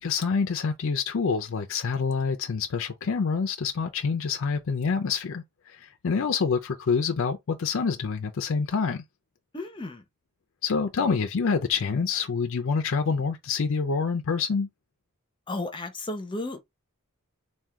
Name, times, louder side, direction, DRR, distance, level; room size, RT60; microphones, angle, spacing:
voice 1, 0.0-9.0 10.6-14.7, left 5 dB, 60° left, 0.5 m, -27 dB
voice 2, 9.5-10.0 15.5-16.6, left 2 dB, 20° left, 0.7 m, -33 dB
3.6 x 2.3 x 4.5 m
head